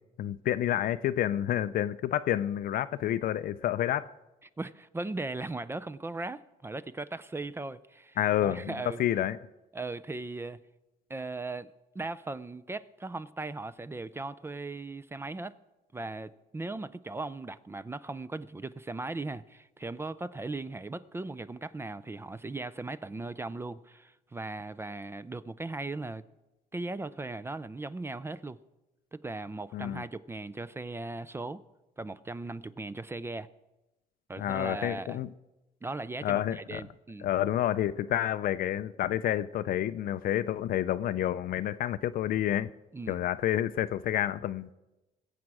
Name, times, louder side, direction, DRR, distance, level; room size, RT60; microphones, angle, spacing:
voice 1, 0.2-4.1 8.2-8.7 9.0-9.4 29.7-30.0 34.4-35.3 36.2-36.8 37.2-42.7 43.1-44.7, left 12 dB, 60° left, 0.4 m, -29 dB
voice 2, 4.6-9.0 9.7-10.6 11.1-15.5 15.9-26.2 26.7-28.6 29.1-31.6 32.0-33.5 34.3-35.2 35.8-37.3 42.9-43.2, right 2 dB, 15° right, 0.4 m, -38 dB
21.0 x 7.5 x 4.7 m
cardioid pair, 110°, 17 cm